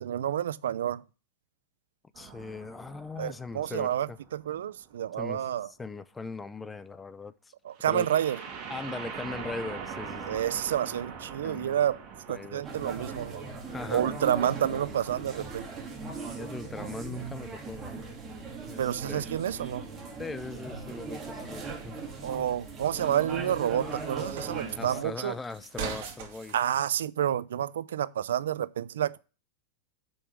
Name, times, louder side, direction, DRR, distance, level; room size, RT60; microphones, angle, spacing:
voice 1, 0.0-1.0 3.2-5.7 7.6-8.4 10.3-13.4 13.9-15.7 18.8-19.9 22.2-25.4 26.5-29.2, right 10 dB, 85° right, 0.4 m, -29 dB
sound 1, 2.1-5.0 7.8-14.6, right 6 dB, 40° right, 2.7 m, -43 dB
voice 2, 2.2-4.2 5.2-5.4 5.8-7.3 7.9-8.1 8.7-10.4 11.4-11.8 12.3-12.6 13.7-14.1 16.3-18.2 18.7-18.8 19.1-19.2 20.2-22.0 24.8-26.5, left 4 dB, 10° left, 0.5 m, -39 dB
sound 2, 12.6-25.0, right 4 dB, 25° right, 2.3 m, -39 dB
sound 3, 21.7-26.7, right 7 dB, 60° right, 2.3 m, -43 dB
6.9 x 5.4 x 5.9 m
supercardioid pair, 130°, 0 cm